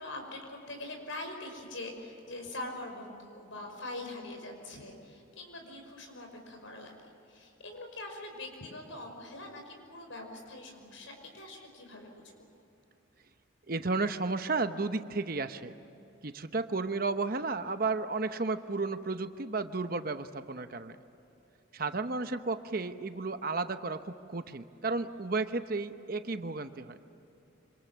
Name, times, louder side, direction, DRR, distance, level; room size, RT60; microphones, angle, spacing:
voice 1, 0.0-12.2 21.7-22.1, left 2 dB, 75° left, 4 dB, 5.6 m, -43 dB
voice 2, 13.7-15.7 16.2-21.0 21.7-27.0, right 3 dB, 45° right, 9 dB, 0.9 m, -33 dB
26.5 x 26.0 x 7.5 m, 2.9 s
head